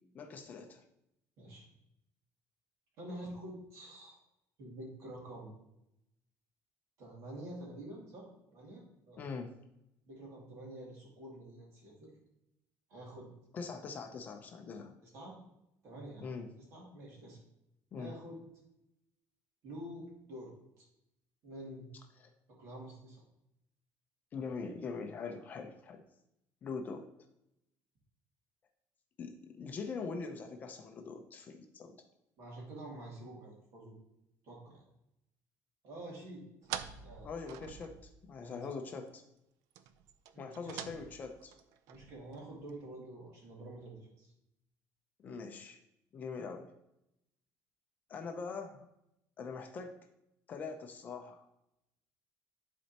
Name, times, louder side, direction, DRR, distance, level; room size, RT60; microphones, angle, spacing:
voice 1, 0.1-0.8 9.2-9.5 13.5-14.9 16.2-16.5 17.9-18.1 22.2-22.3 24.3-26.0 26.6-27.1 29.2-32.0 37.2-39.2 40.4-41.5 45.2-45.8 46.1-46.7 48.1-48.9 49.4-50.0 50.5-51.5, left 4 dB, 30° left, 5 dB, 0.5 m, -42 dB
voice 2, 3.0-4.2 4.6-5.6 7.0-9.2 10.1-12.1 12.9-13.3 15.0-15.4 15.8-17.4 18.0-18.4 19.6-20.5 20.8-20.9 21.4-21.9 22.5-23.2 32.4-34.0 34.4-34.8 35.8-36.4 37.0-37.3 38.4-38.6 40.3-41.0 41.9-44.3, right 1 dB, 50° right, -3 dB, 2.4 m, -48 dB
sound 1, 36.6-38.4 38.7-38.8 39.1-39.2 39.7-42.7, right 9 dB, 75° right, 0.5 m, -46 dB
11.0 x 4.2 x 2.8 m, 0.84 s
cardioid pair, 180°, 6 cm